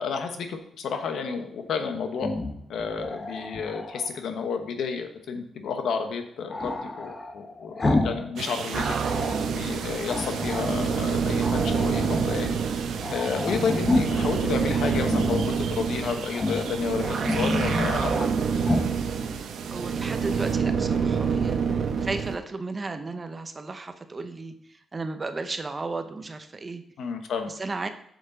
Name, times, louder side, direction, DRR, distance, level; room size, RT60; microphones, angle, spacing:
voice 1, 0.0-2.3 2.7-8.9 9.5-12.6 13.1-18.1 27.0-27.5, left 5 dB, 75° left, 6 dB, 1.1 m, -31 dB
Growling, 2.1-4.1 6.5-8.3 8.6-9.5 10.1-11.0 11.4-12.4 12.7-12.8 13.0-14.3 14.8-15.6 16.3-16.7 17.1-18.3 18.6-18.9, left 2 dB, 25° left, 0.9 m, -29 dB
sound 1, 8.4-20.6, right 7 dB, 90° right, 0.8 m, -38 dB
sound 2, 8.7-22.4, right 6 dB, 60° right, 0.9 m, -27 dB
voice 2, 19.7-26.8 27.5-27.9, right 3 dB, 25° right, 8 dB, 0.6 m, -34 dB
8.0 x 6.7 x 3.8 m, 0.70 s
wide cardioid pair, 150°, 0 cm